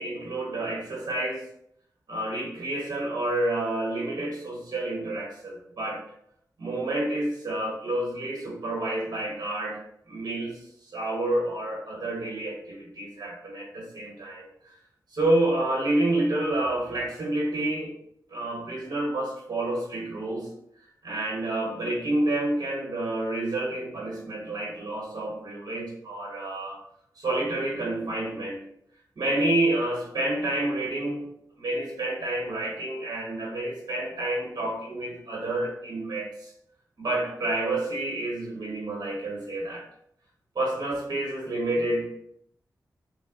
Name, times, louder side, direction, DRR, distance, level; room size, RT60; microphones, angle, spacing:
voice 1, 0.0-1.4 2.1-6.0 6.6-9.8 10.1-10.6 10.9-14.4 15.1-17.9 18.3-20.5 21.0-26.8 27.2-28.6 29.2-31.3 31.6-36.5 37.0-39.8 40.5-42.2, right 1 dB, 70° right, -3 dB, 1.0 m, -29 dB
3.4 x 2.1 x 3.6 m, 0.71 s
cardioid pair, 60°, 7 cm